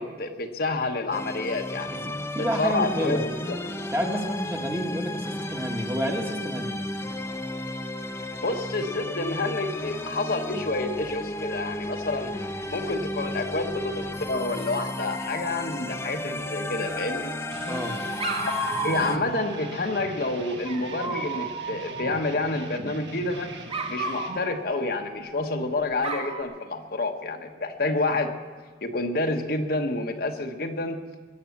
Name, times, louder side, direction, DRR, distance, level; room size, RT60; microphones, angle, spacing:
voice 1, 0.0-2.0 2.6-3.6 8.4-12.3 12.7-17.3 18.4-18.5 18.8-23.5 23.9-28.3 28.8-31.0, left 2 dB, 55° left, 4 dB, 1.2 m, -29 dB
sound 1, 1.1-19.2, left 1 dB, 15° left, 0.7 m, -33 dB
voice 2, 1.9-3.2 3.9-6.8 17.6-18.0, equal, 15° right, 2 dB, 1.5 m, -29 dB
Dog, 16.7-17.5 18.2-19.9 20.7-22.8 23.7-25.6 26.0-26.4, right 3 dB, 30° right, 1.6 m, -34 dB
sound 2, 17.5-24.4, right 2 dB, 85° right, 1.4 m, -41 dB
21.0 x 8.5 x 7.2 m, 1.4 s
head